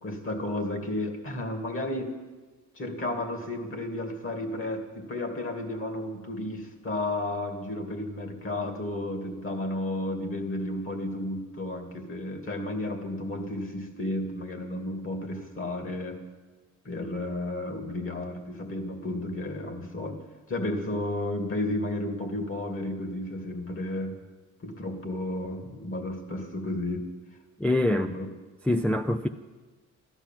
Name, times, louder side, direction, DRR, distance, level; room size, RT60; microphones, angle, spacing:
voice 1, 0.0-2.2 2.7-16.2 16.8-20.2 20.5-24.2 24.6-27.1 27.9-28.3, left 1 dB, 45° left, 5 dB, 2.6 m, -32 dB
voice 2, 27.6-28.1 28.6-29.3, left 1 dB, 5° left, 7 dB, 0.5 m, -24 dB
14.0 x 12.0 x 7.5 m, 1.3 s
cardioid pair, 90°, 30 cm